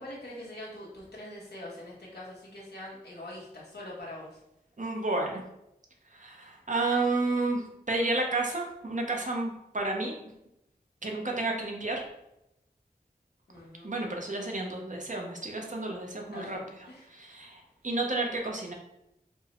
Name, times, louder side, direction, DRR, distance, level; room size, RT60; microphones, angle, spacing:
voice 1, 0.0-4.4 13.5-13.9 16.3-16.6 16.9-17.1, left 1 dB, 90° left, -5 dB, 1.1 m, -43 dB
voice 2, 4.8-5.4 6.1-10.2 11.0-12.0 13.8-16.6 17.1-18.7, right 2 dB, 50° right, 1 dB, 0.7 m, -31 dB
4.4 x 2.1 x 2.9 m, 0.84 s
wide cardioid pair, 45°, 16 cm